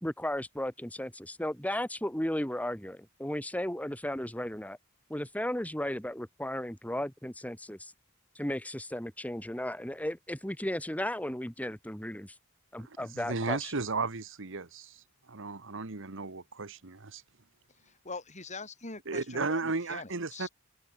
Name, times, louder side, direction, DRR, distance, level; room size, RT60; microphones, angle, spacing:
voice 1, 0.0-4.8 5.1-7.9 8.4-12.4 12.7-13.7, left 1 dB, 5° left, 3.5 m, -35 dB
voice 2, 12.8-17.2 19.1-20.5, right 3 dB, 65° right, 1.4 m, -35 dB
voice 3, 17.8-20.5, left 3 dB, 35° left, 8.0 m, -43 dB
open air
head